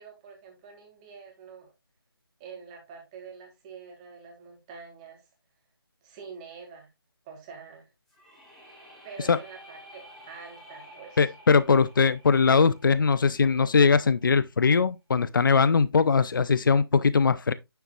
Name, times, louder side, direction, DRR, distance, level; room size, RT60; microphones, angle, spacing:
voice 1, 0.0-1.7 2.4-5.2 6.0-6.9 7.3-7.9 9.0-11.3, right 6 dB, 15° right, 1.9 m, -46 dB
sound 1, 8.1-13.9, equal, ahead, 2.7 m, -51 dB
voice 2, 11.2-17.5, left 5 dB, 55° left, 0.6 m, -21 dB
9.3 x 7.1 x 2.4 m
figure-of-eight pair, 160°, 13 cm